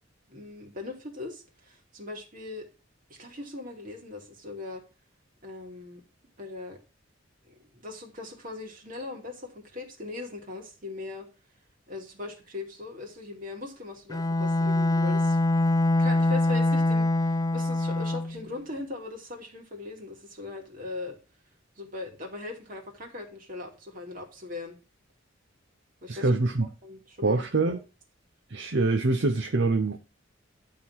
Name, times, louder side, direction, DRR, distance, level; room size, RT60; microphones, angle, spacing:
voice 1, 0.3-2.7 3.2-4.8 5.4-6.0 6.4-6.8 7.5-11.3 11.9-15.4 16.0-21.2 21.8-24.8 26.0-27.8, left 3 dB, 45° right, 2.5 m, -40 dB
Bowed string instrument, 14.1-18.4, left 2 dB, 20° left, 0.4 m, -24 dB
voice 2, 26.1-26.7 27.2-27.8 28.5-30.0, right 3 dB, 60° right, 0.8 m, -24 dB
11.0 x 3.9 x 6.3 m
head